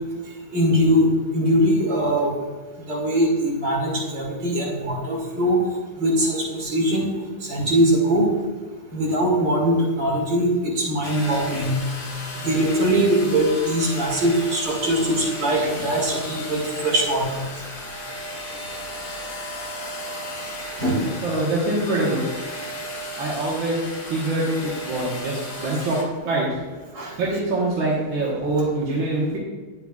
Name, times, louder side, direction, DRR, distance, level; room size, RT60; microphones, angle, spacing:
voice 1, 0.5-1.1 1.3-2.3 2.9-5.6 6.0-7.1 7.5-8.3 8.9-11.8 12.4-17.4 20.8-21.0 27.0-27.1, equal, 70° right, -3 dB, 2.8 m, -21 dB
sound 1, 11.0-26.0, left 1 dB, 70° left, 2.2 m, -34 dB
voice 2, 21.2-22.3 23.2-23.8 24.1-26.0 26.3-26.5 27.2-29.4, right 2 dB, 90° right, -5 dB, 2.1 m, -24 dB
9.9 x 7.8 x 2.4 m, 1.4 s
omnidirectional pair, 2.0 m